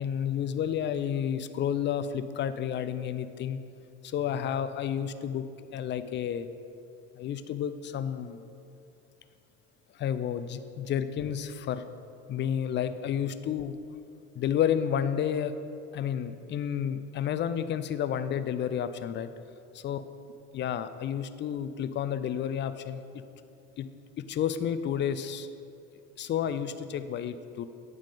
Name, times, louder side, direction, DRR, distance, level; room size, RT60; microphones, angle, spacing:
voice 1, 0.0-3.6 4.0-5.4 5.7-6.5 7.2-8.4 9.9-11.9 12.3-13.7 14.4-15.5 15.9-19.3 19.7-20.0 20.5-23.0 23.8-23.9 24.3-25.5 26.2-27.6, left 9 dB, 30° left, 11 dB, 0.4 m, -31 dB
8.7 x 3.7 x 5.7 m, 2.6 s
hypercardioid pair, 75°, 38 cm